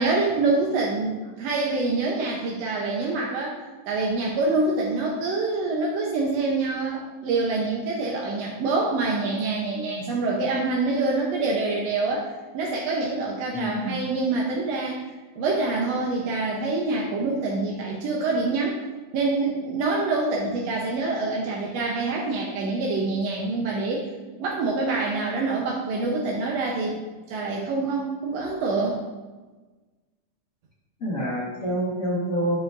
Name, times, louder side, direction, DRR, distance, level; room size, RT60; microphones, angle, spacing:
voice 1, 0.0-3.6 3.9-12.3 12.5-15.0 15.4-18.8 19.1-24.0 24.4-29.0, right 3 dB, 70° right, -2 dB, 1.7 m, -26 dB
voice 2, 13.5-14.0 31.0-32.6, equal, 35° left, -6 dB, 1.5 m, -27 dB
12.5 x 4.8 x 2.6 m, 1.2 s
omnidirectional pair, 3.8 m